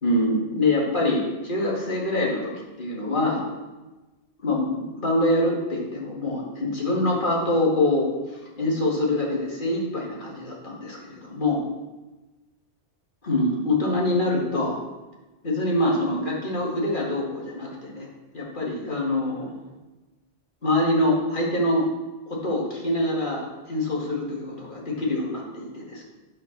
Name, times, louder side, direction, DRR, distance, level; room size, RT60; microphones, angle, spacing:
voice 1, 0.0-2.5 2.8-3.4 4.4-8.1 8.6-11.6 13.2-14.8 15.4-18.1 18.3-19.7 20.6-21.9 22.3-26.0, left 1 dB, 45° left, -3 dB, 2.2 m, -25 dB
9.5 x 5.6 x 6.0 m, 1.1 s
omnidirectional pair, 1.2 m